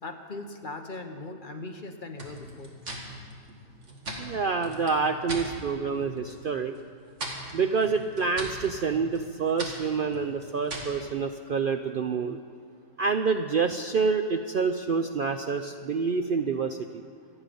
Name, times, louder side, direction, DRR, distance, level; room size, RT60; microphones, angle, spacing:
voice 1, 0.0-2.7 3.0-3.1 5.0-5.3, left 2 dB, 40° left, 4 dB, 1.1 m, -40 dB
sound 1, 2.2-5.5 5.9-6.5 6.7-11.0, right 1 dB, 50° right, 2.2 m, -39 dB
voice 2, 4.2-6.7 7.5-12.4 13.0-17.0, right 5 dB, 70° right, 6 dB, 0.5 m, -27 dB
26.0 x 9.0 x 5.2 m, 2.1 s
omnidirectional pair, 1.6 m